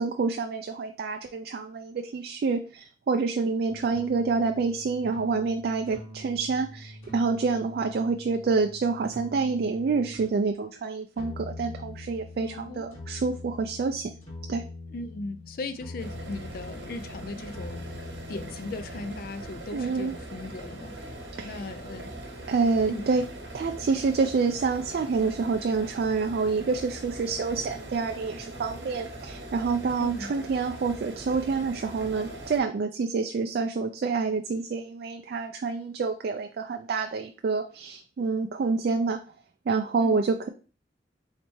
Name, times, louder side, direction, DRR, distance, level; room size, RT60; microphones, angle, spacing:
voice 1, 0.0-14.1 14.5-14.6 19.7-20.2 21.4-21.6 22.5-23.3 23.5-39.2 39.7-40.5, right 4 dB, 55° right, 0.3 m, -27 dB
sound 1, 3.7-10.3 11.2-19.2, left 2 dB, 35° left, 1.9 m, -43 dB
voice 2, 12.4-12.9 14.9-21.0 21.4-22.1 22.9-23.2 30.0-30.3 40.0-40.3, left 2 dB, 55° left, 0.4 m, -38 dB
sound 2, 16.0-32.6, right 1 dB, 80° right, 1.1 m, -41 dB
4.0 x 3.3 x 3.1 m
head